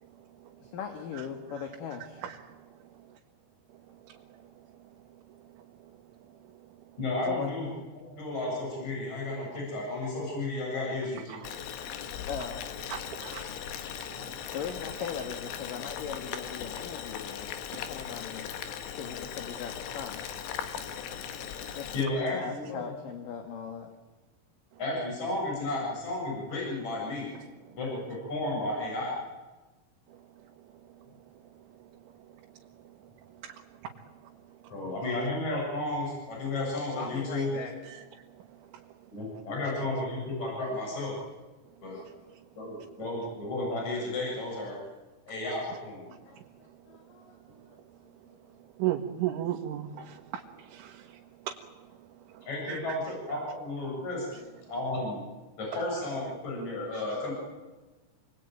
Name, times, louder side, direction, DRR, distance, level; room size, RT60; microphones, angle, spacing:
voice 1, 0.6-2.2 7.3-7.5 12.3-12.7 14.2-18.5 18.9-20.3 21.7-23.9 37.0-37.7 41.9-42.1 46.1-47.8, left 7 dB, 55° left, 5 dB, 3.0 m, -39 dB
voice 2, 7.0-7.7 8.0-11.4 21.9-22.8 24.8-27.3 27.7-29.1 34.7-37.5 39.1-41.1 41.8-42.0 42.6-44.8 45.3-46.0 52.5-54.3 54.7-55.2 55.6-57.3, left 2 dB, 35° left, -3 dB, 8.8 m, -33 dB
voice 3, 11.3-11.6 12.9-13.5 14.2-14.3 33.4-33.5 35.0-35.2 48.8-51.2 51.5-51.6 52.7-52.8 56.9-57.0, right 12 dB, 90° right, 1 dB, 3.9 m, -34 dB
Boiling, 11.4-22.1, left 8 dB, 70° left, 3.6 m, -39 dB
27.5 x 21.5 x 9.3 m, 1.2 s
omnidirectional pair, 5.3 m